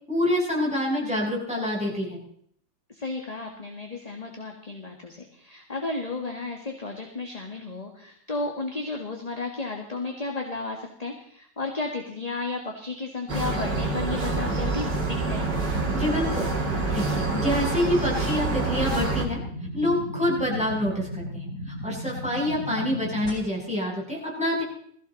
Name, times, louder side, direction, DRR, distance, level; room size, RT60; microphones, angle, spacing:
voice 1, 0.1-2.2 15.9-19.4 19.7-24.6, left 1 dB, 5° right, -5 dB, 8.0 m, -27 dB
voice 2, 2.9-15.5 22.4-22.6, left 3 dB, 20° left, 2 dB, 1.9 m, -33 dB
sound 1, 13.3-23.3, equal, 55° left, 5.0 m, -36 dB
sound 2, 13.3-19.3, right 3 dB, 80° right, 3.1 m, -27 dB
21.0 x 16.0 x 4.1 m, 0.65 s
omnidirectional pair, 1.8 m